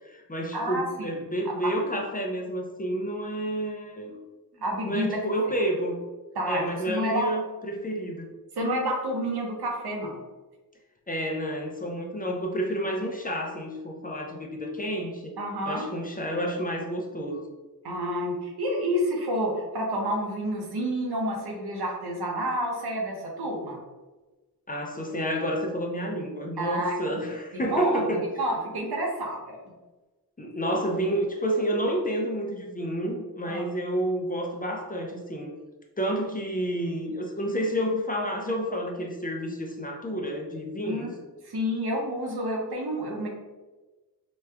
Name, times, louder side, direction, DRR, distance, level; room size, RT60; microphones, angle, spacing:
voice 1, 0.0-4.2 4.8-6.0 6.5-8.3 11.1-15.4 15.7-17.4 24.7-28.3 30.4-35.5 36.0-41.1, equal, 25° left, 1 dB, 0.4 m, -30 dB
voice 2, 0.5-1.2 1.4-1.5 4.6-5.1 6.3-7.3 8.6-10.2 15.4-15.9 17.8-23.8 26.6-26.9 27.7-28.0 28.4-29.6 33.5-33.6 40.8-41.1 41.4-43.3, equal, 80° right, 0 dB, 0.8 m, -29 dB
3.0 x 2.3 x 3.3 m, 1.2 s
wide cardioid pair, 85°, 38 cm